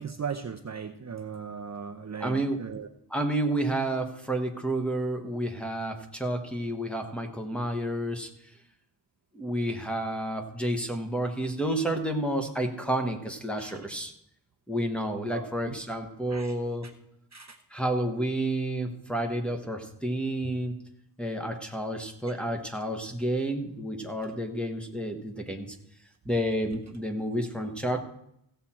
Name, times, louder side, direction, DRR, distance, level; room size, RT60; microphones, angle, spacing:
voice 1, 0.0-2.9 13.6-13.8 15.3-15.8 16.3-16.5 16.8-16.9 17.3-17.6, right 6 dB, 40° right, 4 dB, 0.6 m, -38 dB
voice 2, 2.2-2.6 3.1-8.3 9.3-14.1 14.7-16.9 17.7-20.8 21.2-25.7 26.2-28.0, right 1 dB, 5° left, 2 dB, 1.2 m, -30 dB
15.5 x 7.5 x 4.3 m, 0.77 s
wide cardioid pair, 135°, 43 cm